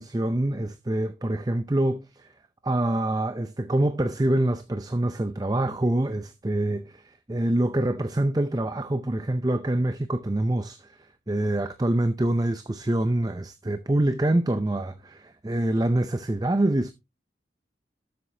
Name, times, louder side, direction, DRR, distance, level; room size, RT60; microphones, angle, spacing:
voice 1, 0.0-2.3 2.6-16.9, right 1 dB, 20° right, 0.5 m, -25 dB
12.5 x 7.8 x 2.7 m
head